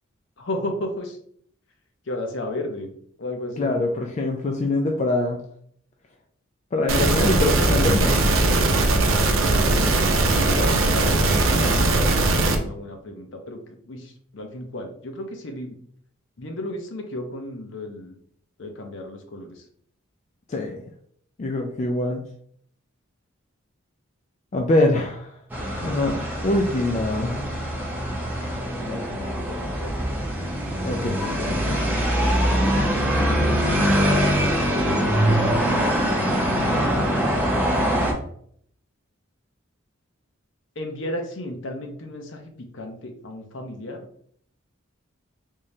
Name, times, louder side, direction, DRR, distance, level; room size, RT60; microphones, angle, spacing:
voice 1, 0.4-1.2 2.1-2.9 3.2-3.7 10.3-12.0 12.4-15.8 16.4-18.1 18.6-19.6 28.8-29.9 40.8-44.0, left 1 dB, 60° left, 3 dB, 0.7 m, -34 dB
voice 2, 3.6-5.4 6.7-8.2 20.5-20.8 21.4-22.2 24.5-25.3 25.8-26.2 26.4-27.4 30.8-31.8 32.2-32.4, left 2 dB, 35° left, 2 dB, 0.3 m, -24 dB
sound 1, 6.9-12.6, right 2 dB, 75° right, 0.6 m, -19 dB
sound 2, 25.5-38.1, equal, 10° right, 0.7 m, -23 dB
3.6 x 3.2 x 2.7 m, 0.63 s
head